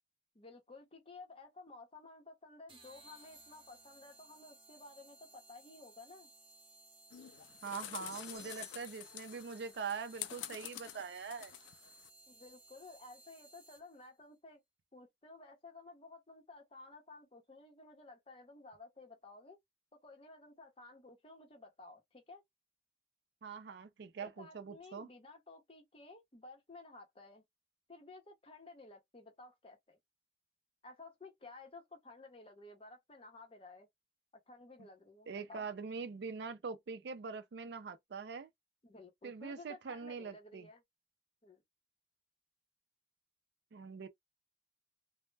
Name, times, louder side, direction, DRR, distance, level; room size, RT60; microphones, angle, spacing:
voice 1, 0.3-6.3 12.3-14.6 14.9-19.6 19.9-22.4 24.2-27.4 27.9-30.0 30.8-33.9 34.5-35.6 38.8-40.8 41.4-41.6, left 3 dB, 30° left, 0.7 m, -54 dB
sound 1, 2.7-14.1, right 2 dB, 30° right, 0.8 m, -61 dB
sound 2, 7.1-12.1, left 12 dB, 80° left, 0.3 m, -48 dB
voice 2, 7.6-11.5 23.4-25.1 35.3-38.5 39.2-40.7 43.7-44.1, right 5 dB, 60° right, 0.4 m, -43 dB
sound 3, 8.1-9.1, right 1 dB, ahead, 0.9 m, -58 dB
2.1 x 2.0 x 3.2 m
head